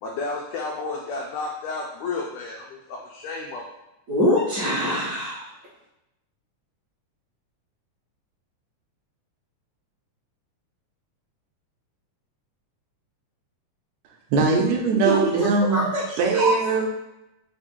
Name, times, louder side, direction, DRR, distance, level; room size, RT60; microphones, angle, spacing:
voice 1, 0.0-3.6, left 3 dB, 85° left, -1 dB, 1.5 m, -32 dB
voice 2, 4.1-5.4 15.0-15.3 15.6-16.5, left 1 dB, 50° right, -12 dB, 1.1 m, -24 dB
voice 3, 14.3-15.8 16.2-16.9, right 4 dB, 75° right, 0 dB, 1.8 m, -21 dB
4.9 x 2.2 x 4.4 m, 0.90 s
omnidirectional pair, 3.6 m